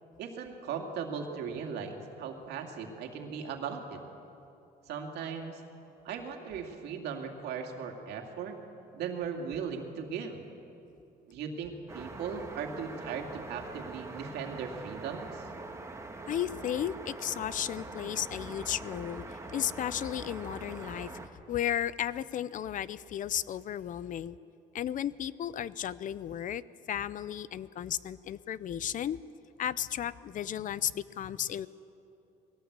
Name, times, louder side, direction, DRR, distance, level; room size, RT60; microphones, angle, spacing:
voice 1, 0.2-4.0 4.9-5.6 6.0-8.6 8.9-10.4 11.3-15.4, right 6 dB, 80° right, 3 dB, 2.5 m, -38 dB
sound 1, 11.9-21.3, right 3 dB, 15° right, 1.7 m, -43 dB
voice 2, 16.3-19.2 19.5-21.2 21.5-24.4 24.7-26.6 26.9-29.2 29.6-31.7, left 10 dB, 50° left, 18 dB, 0.6 m, -34 dB
21.0 x 17.5 x 8.2 m, 2.9 s
cardioid pair, 110°, 17 cm